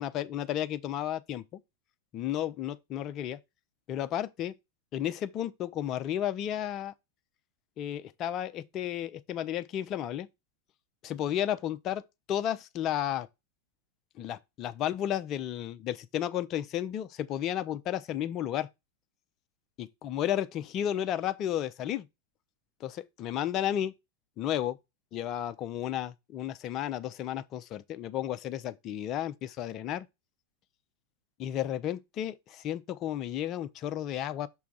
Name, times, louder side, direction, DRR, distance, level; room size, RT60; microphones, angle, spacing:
voice 1, 0.0-1.6 2.1-3.4 3.9-4.5 4.9-6.9 7.8-10.3 11.0-12.0 12.3-13.3 14.2-18.7 19.8-22.1 22.8-23.9 24.4-24.8 25.1-30.1 31.4-34.5, left 11 dB, 35° left, 0.6 m, -33 dB
6.2 x 3.5 x 5.9 m
figure-of-eight pair, 90°, 0 cm